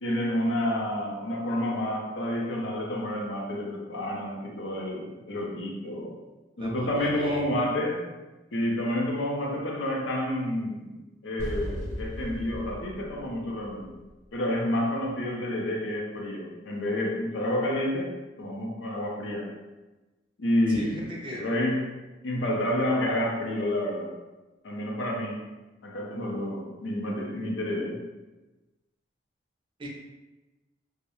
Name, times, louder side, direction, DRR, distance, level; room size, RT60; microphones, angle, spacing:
voice 1, 0.0-6.2 6.6-8.0 8.5-11.0 11.2-14.0 14.3-19.5 20.4-22.0 22.2-24.2 24.6-25.4 25.8-28.0, left 1 dB, 90° left, -1 dB, 0.5 m, -29 dB
voice 2, 6.6-7.6 20.7-21.4 29.8-29.9, right 1 dB, 25° right, -2 dB, 0.4 m, -39 dB
sound 1, 11.4-14.3, equal, 40° left, 0.4 m, -37 dB
2.3 x 2.1 x 2.9 m, 1.1 s
head